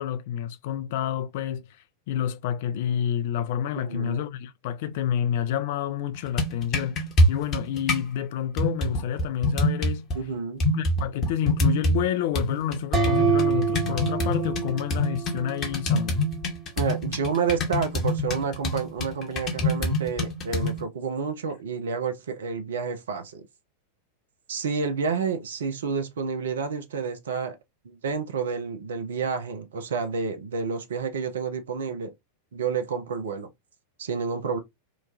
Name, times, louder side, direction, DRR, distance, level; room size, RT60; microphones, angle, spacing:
voice 1, 0.0-10.1 10.7-16.2, left 10 dB, 50° left, 0.4 m, -29 dB
voice 2, 3.7-4.2 10.1-10.6 16.8-23.5 24.5-27.6 27.8-32.1 32.5-33.5 34.0-34.6, right 5 dB, 65° right, 0.5 m, -29 dB
sound 1, 6.1-8.1 8.6-10.1 10.6-12.1 12.3-20.8, left 1 dB, 30° left, 0.9 m, -26 dB
sound 2, 12.9-15.7, right 4 dB, 25° right, 1.2 m, -26 dB
3.0 x 2.2 x 2.4 m
figure-of-eight pair, 90°, 0 cm